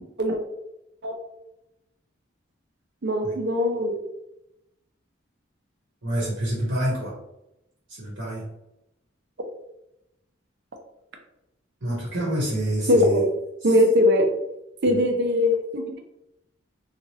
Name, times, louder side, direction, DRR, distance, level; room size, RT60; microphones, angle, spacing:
voice 1, 3.0-4.0 12.9-13.3 13.6-14.3 14.8-16.0, left 1 dB, 55° right, 4 dB, 0.5 m, -20 dB
voice 2, 6.0-7.2 7.9-8.4 11.8-13.2 14.9-15.0, right 1 dB, 70° right, -5 dB, 0.9 m, -27 dB
2.8 x 2.4 x 2.9 m, 0.87 s
head